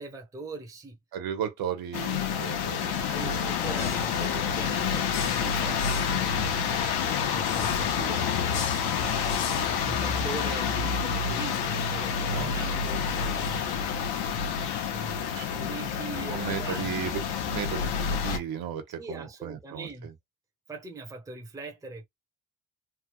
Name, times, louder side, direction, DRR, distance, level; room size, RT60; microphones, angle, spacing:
voice 1, 0.0-1.0 2.8-6.6 7.3-9.4 9.8-14.0 14.9-16.9 19.0-20.1 20.7-22.1, right 3 dB, 10° right, 0.6 m, -41 dB
voice 2, 1.1-2.9 3.2-3.5 12.3-12.5 15.3-15.5 16.3-20.1, right 9 dB, 70° right, 1.2 m, -35 dB
sound 1, 1.9-18.4, left 7 dB, 85° left, 1.0 m, -28 dB
sound 2, 7.4-14.9, left 8 dB, 50° left, 0.7 m, -45 dB
3.2 x 2.3 x 3.1 m
cardioid pair, 150°, 37 cm